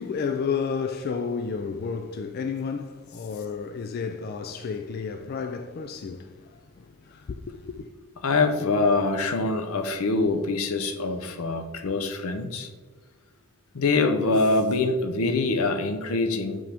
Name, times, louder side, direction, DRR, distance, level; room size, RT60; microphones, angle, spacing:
voice 1, 0.0-7.9, left 5 dB, 45° left, 0.3 m, -32 dB
voice 2, 8.2-12.7 13.7-16.6, left 3 dB, 80° left, 0.7 m, -24 dB
8.5 x 3.9 x 3.4 m
head